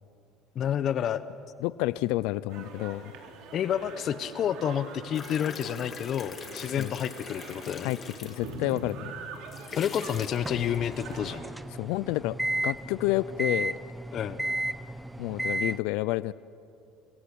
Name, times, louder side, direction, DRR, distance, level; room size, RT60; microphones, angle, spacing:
voice 1, 0.5-1.2 3.5-7.9 9.8-11.4 14.1-14.4, left 9 dB, 45° left, 13 dB, 1.0 m, -29 dB
voice 2, 1.6-3.1 6.8-7.0 7.8-9.1 11.8-12.4 12.6-13.8 15.2-16.3, left 18 dB, 75° left, 19 dB, 0.5 m, -29 dB
sound 1, 2.5-11.4, right 4 dB, 65° right, 4.3 m, -44 dB
sound 2, 5.1-8.9 9.3-11.1, left 5 dB, 30° left, 2.3 m, -43 dB
sound 3, 10.3-15.8, right 1 dB, 5° right, 0.8 m, -33 dB
29.0 x 22.5 x 8.6 m, 2.5 s
supercardioid pair, 115°, 0 cm